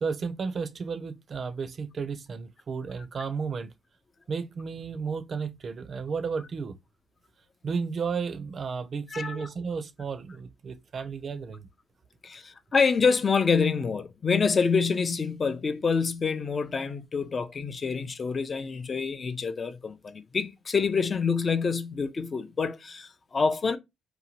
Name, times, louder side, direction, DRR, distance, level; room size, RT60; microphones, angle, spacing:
voice 1, 0.0-3.7 4.3-6.8 7.6-11.7, right 5 dB, 45° right, 0.4 m, -33 dB
voice 2, 9.1-9.5 12.2-23.8, left 5 dB, 35° left, 0.4 m, -27 dB
2.7 x 2.1 x 2.8 m
cardioid pair, 90°, 0 cm